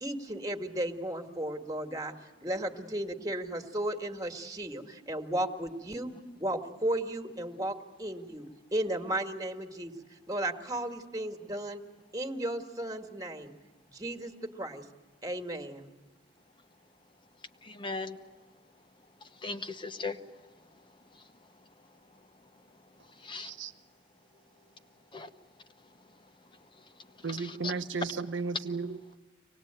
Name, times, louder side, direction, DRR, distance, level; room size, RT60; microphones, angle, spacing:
voice 1, 0.0-2.1 2.4-8.5 8.7-9.9 10.3-11.8 12.1-13.5 13.9-14.8 15.2-15.9, right 1 dB, 20° right, 5 dB, 1.8 m, -34 dB
voice 2, 17.6-18.2 19.2-21.9 22.1-23.5 25.1-25.3 26.0-26.3 26.6-27.7, left 3 dB, 25° left, 8 dB, 1.0 m, -42 dB
voice 3, 27.2-29.2, right 4 dB, 80° right, 10 dB, 1.0 m, -34 dB
24.5 x 19.5 x 8.9 m, 1.3 s
head